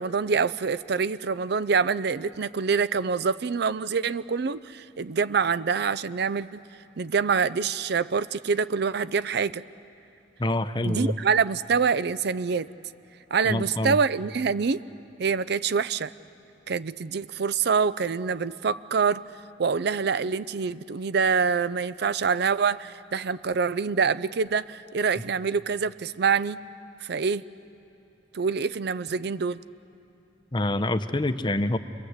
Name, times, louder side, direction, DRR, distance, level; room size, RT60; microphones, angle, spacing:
voice 1, 0.0-6.6 7.0-9.6 10.8-12.7 13.3-14.8 15.2-16.1 16.7-19.2 19.6-26.6 27.0-27.4 28.3-29.6, right 5 dB, 65° right, 16 dB, 0.5 m, -25 dB
voice 2, 10.4-11.1 13.5-14.0 30.5-31.8, left 1 dB, 25° left, 10 dB, 0.7 m, -26 dB
28.5 x 22.0 x 8.1 m, 2.9 s
head